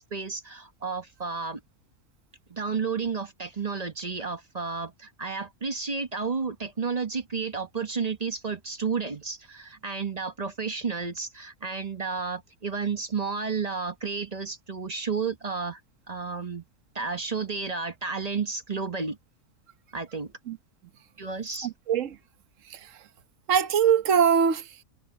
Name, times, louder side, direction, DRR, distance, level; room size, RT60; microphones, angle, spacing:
voice 1, 0.0-1.6 2.5-15.8 16.1-16.6 16.9-19.2 19.9-20.3 21.2-21.7, right 5 dB, 30° right, 1.0 m, -32 dB
voice 2, 21.6-22.2 22.7-23.0 23.5-24.8, right 7 dB, 65° right, 1.3 m, -23 dB
omnidirectional pair, 1.5 m